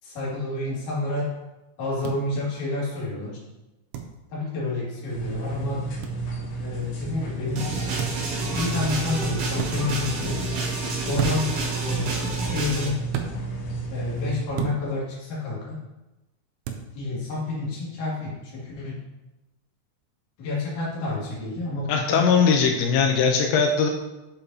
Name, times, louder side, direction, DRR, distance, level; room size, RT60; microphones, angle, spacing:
voice 1, 0.0-1.3 1.8-3.4 4.3-5.8 6.6-7.6 8.4-10.3 11.1-11.5 11.8-12.2 12.5-13.0 13.9-15.8 16.9-19.0 20.4-22.2, left 2 dB, 50° left, -6 dB, 2.8 m, -29 dB
sound 1, 2.0-2.2 3.9-4.1 6.0-6.2 8.0-8.3 9.5-9.7 11.2-11.6 13.1-13.3 14.6-14.8 16.6-16.9, right 8 dB, 90° right, 2.4 m, -30 dB
Active Clothing Dryer, 5.1-14.4, right 4 dB, 70° left, 3.3 m, -32 dB
sound 2, 7.6-12.9, right 2 dB, 65° right, 2.1 m, -30 dB
voice 2, 21.9-23.9, left 5 dB, 90° left, 3 dB, 2.5 m, -20 dB
8.0 x 6.9 x 2.7 m, 1.0 s
omnidirectional pair, 5.9 m